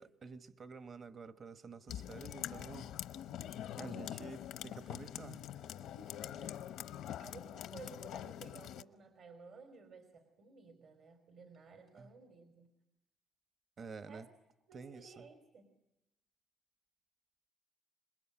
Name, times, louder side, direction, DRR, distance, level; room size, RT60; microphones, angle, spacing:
voice 1, 0.0-2.9 3.8-5.4 11.9-12.1 13.8-14.3 14.7-15.2, right 5 dB, 50° right, 11 dB, 1.3 m, -50 dB
sound 1, 1.9-8.8, left 11 dB, 90° left, 0.9 m, -44 dB
voice 2, 6.1-6.6 7.2-12.7 14.1-14.3 14.7-15.7, right 5 dB, 70° right, 6 dB, 3.6 m, -56 dB
27.5 x 21.0 x 8.8 m, 0.91 s
cardioid pair, 90°, 0 cm